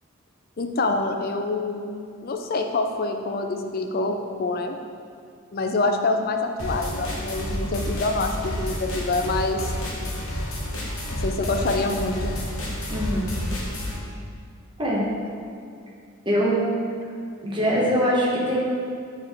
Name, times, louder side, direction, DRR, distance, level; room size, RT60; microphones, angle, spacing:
voice 1, 0.6-1.9 2.2-4.8 5.5-9.7 11.1-12.3, left 2 dB, 45° left, 4 dB, 0.4 m, -26 dB
sound 1, 6.6-14.0, equal, 65° left, 1.2 m, -30 dB
voice 2, 12.9-13.4 14.8-15.1 16.3-16.7 17.4-18.6, equal, 20° right, -5 dB, 1.0 m, -22 dB
7.8 x 3.6 x 3.5 m, 2.3 s
head